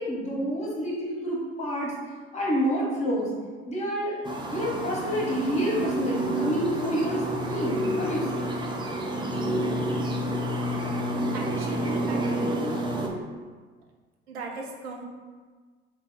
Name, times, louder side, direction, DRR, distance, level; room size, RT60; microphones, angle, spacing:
voice 1, 0.0-1.9 2.3-3.3 3.7-4.2 4.5-8.5, equal, 20° left, -4 dB, 1.4 m, -28 dB
sound 1, 4.2-13.1, right 1 dB, 15° right, 0.4 m, -29 dB
voice 2, 11.3-12.7 14.3-15.0, right 3 dB, 70° right, 1 dB, 0.7 m, -39 dB
3.0 x 2.8 x 3.8 m, 1.5 s
figure-of-eight pair, 60°, 33 cm